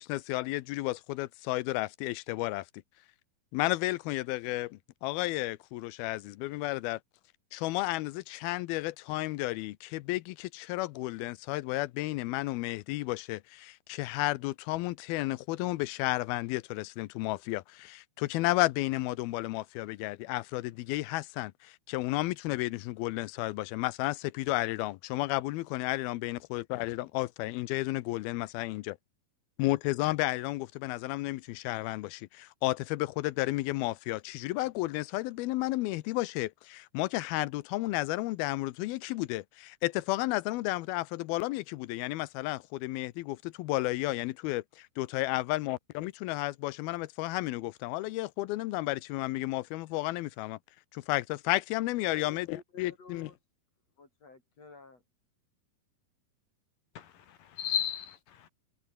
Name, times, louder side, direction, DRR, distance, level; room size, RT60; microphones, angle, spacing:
voice 1, 0.0-2.7 3.5-7.0 7.5-28.9 29.6-44.6 45.0-50.6 50.9-53.3, left 19 dB, 75° left, 2.5 m, -32 dB
voice 2, 52.1-53.4 54.0-55.0, left 4 dB, 40° left, 5.8 m, -52 dB
voice 3, 57.0-58.5, left 9 dB, 60° left, 3.7 m, -35 dB
omnidirectional pair, 4.6 m